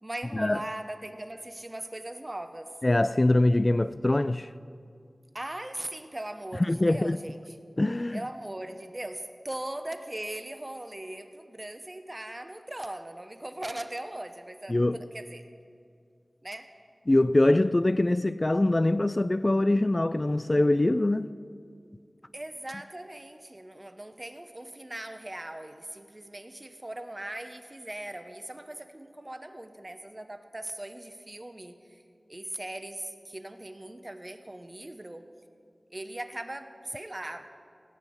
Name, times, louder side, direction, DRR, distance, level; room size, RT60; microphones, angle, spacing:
voice 1, 0.0-2.7 5.3-7.4 8.1-15.4 16.4-16.7 22.3-32.0 32.3-35.2 35.9-37.5, right 1 dB, 30° right, 0.9 m, -39 dB
voice 2, 2.8-4.5 6.6-7.2 7.8-8.2 14.7-15.0 17.1-21.3, left 1 dB, 35° left, 0.3 m, -23 dB
18.0 x 6.0 x 9.3 m
wide cardioid pair, 50°, 0 cm